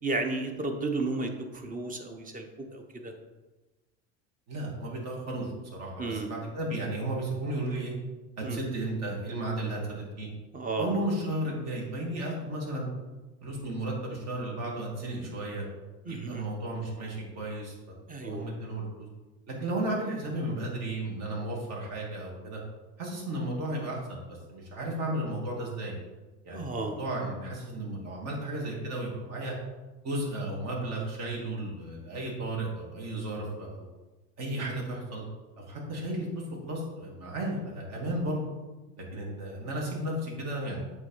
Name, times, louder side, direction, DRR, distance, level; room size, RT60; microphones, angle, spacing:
voice 1, 0.0-3.1 6.0-6.3 8.4-8.6 10.5-10.9 16.0-16.5 18.1-18.5 26.5-27.0, right 3 dB, 25° right, 5 dB, 1.2 m, -33 dB
voice 2, 4.5-7.9 8.4-10.3 10.8-12.9 13.4-15.6 16.1-19.1 19.5-22.6 23.0-25.9 26.4-29.5 30.0-33.9 34.4-35.2 35.6-38.4 39.1-40.8, right 1 dB, 50° right, -3 dB, 2.7 m, -34 dB
8.2 x 3.6 x 5.6 m, 1.2 s
supercardioid pair, 105°, 33 cm